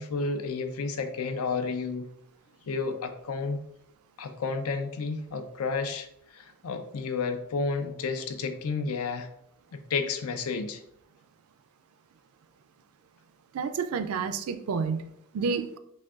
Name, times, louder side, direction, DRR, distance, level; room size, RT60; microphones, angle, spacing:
voice 1, 0.0-2.1 2.7-3.6 4.2-6.1 6.3-9.3 9.7-10.8, left 4 dB, 80° left, 0.5 m, -31 dB
voice 2, 13.5-15.8, right 5 dB, 75° right, 0.4 m, -30 dB
6.1 x 2.2 x 2.3 m
head